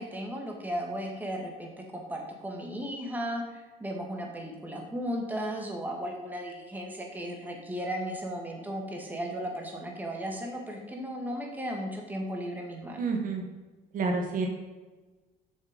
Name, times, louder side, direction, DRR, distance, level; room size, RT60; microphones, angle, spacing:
voice 1, 0.0-13.1, equal, 10° right, 0 dB, 1.9 m, -35 dB
voice 2, 13.0-13.4 13.9-14.5, right 4 dB, 55° right, 2 dB, 1.3 m, -29 dB
7.0 x 6.9 x 5.3 m, 1.3 s
cardioid pair, 110°, 17 cm